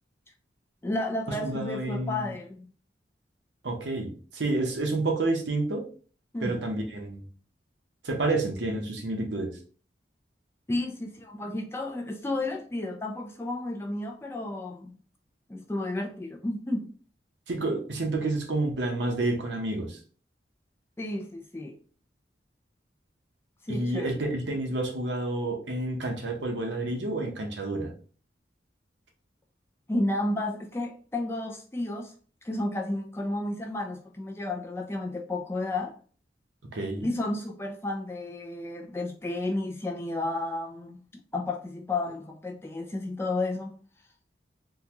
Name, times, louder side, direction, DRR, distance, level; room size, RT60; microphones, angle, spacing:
voice 1, 0.8-2.7 6.3-6.6 10.7-15.0 15.5-16.9 21.0-21.7 23.7-24.1 29.9-32.1 32.4-36.0 37.0-41.0 41.3-43.7, left 2 dB, 15° left, 0.3 m, -32 dB
voice 2, 1.4-2.3 3.6-5.8 6.4-7.2 8.0-9.5 17.5-20.0 23.7-27.9 36.7-37.1, right 2 dB, 80° right, 0.8 m, -29 dB
3.7 x 2.3 x 2.9 m
head